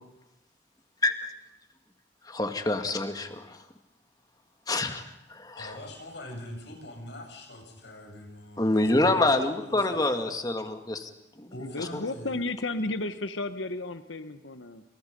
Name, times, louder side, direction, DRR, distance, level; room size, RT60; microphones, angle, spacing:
voice 1, 1.0-1.3 2.2-3.6 4.7-5.0 5.3-5.8 8.6-11.1 11.4-11.5, left 2 dB, 20° left, 6 dB, 2.1 m, -26 dB
voice 2, 5.6-10.2 11.5-12.3, left 1 dB, 65° left, 2 dB, 7.8 m, -43 dB
voice 3, 11.6-14.8, left 2 dB, 85° left, 10 dB, 1.3 m, -33 dB
29.5 x 28.5 x 5.4 m, 0.83 s
head